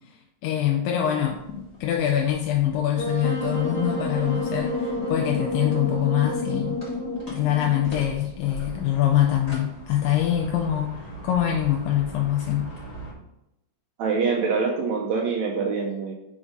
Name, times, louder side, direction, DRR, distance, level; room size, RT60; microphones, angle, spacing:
voice 1, 0.4-6.9 7.3-12.7, left 11 dB, 85° left, 2 dB, 2.3 m, -24 dB
sound 1, 1.2-13.1, right 2 dB, 20° left, 1.1 m, -42 dB
Wind instrument woodwind instrument, 3.0-8.1, left 2 dB, 55° left, 1.1 m, -29 dB
voice 2, 14.0-16.1, right 5 dB, 80° right, 0 dB, 1.6 m, -25 dB
6.1 x 3.8 x 5.0 m, 0.87 s
omnidirectional pair, 3.9 m